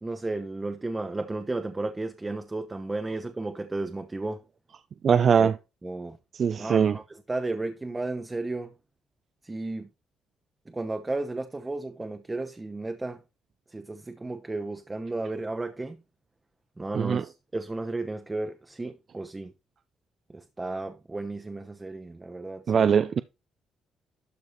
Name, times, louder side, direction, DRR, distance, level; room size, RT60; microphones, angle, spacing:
voice 1, 0.0-4.4 5.4-5.5 5.8-6.2 6.6-7.0 7.3-8.7 9.4-9.9 10.7-13.2 13.7-16.0 16.8-19.5 20.3-22.9, right 2 dB, 20° right, 0.9 m, -33 dB
voice 2, 5.0-5.6 6.3-7.0 16.9-17.2 22.7-23.2, right 7 dB, 55° right, 0.5 m, -21 dB
12.0 x 4.6 x 4.1 m
cardioid pair, 90°, 0 cm